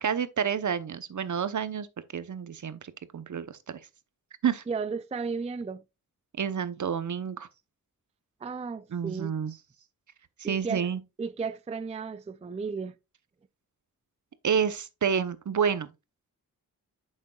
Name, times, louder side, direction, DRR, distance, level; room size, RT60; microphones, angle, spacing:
voice 1, 0.0-1.9 2.1-3.8 4.4-4.6 6.4-7.5 8.9-9.5 10.4-11.0 14.4-15.9, right 7 dB, 55° right, 0.8 m, -29 dB
voice 2, 4.7-5.8 8.4-9.3 10.4-10.9 11.2-12.9, right 5 dB, 20° right, 0.4 m, -34 dB
8.5 x 6.4 x 2.3 m
cardioid pair, 70°, 36 cm